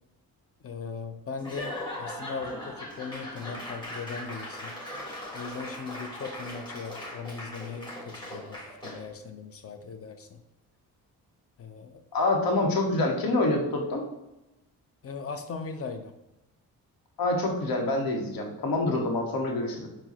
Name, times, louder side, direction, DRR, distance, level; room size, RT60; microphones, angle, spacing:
voice 1, 0.6-4.8 5.3-10.4 11.6-12.0 15.0-16.1, left 5 dB, 40° left, 8 dB, 0.5 m, -39 dB
Laughter / Applause / Crowd, 1.4-9.1, left 1 dB, 10° left, 1.5 m, -39 dB
voice 2, 12.1-14.0 17.2-19.9, left 2 dB, 65° left, 1 dB, 0.9 m, -26 dB
4.5 x 2.1 x 4.1 m, 0.93 s
cardioid pair, 70°, 38 cm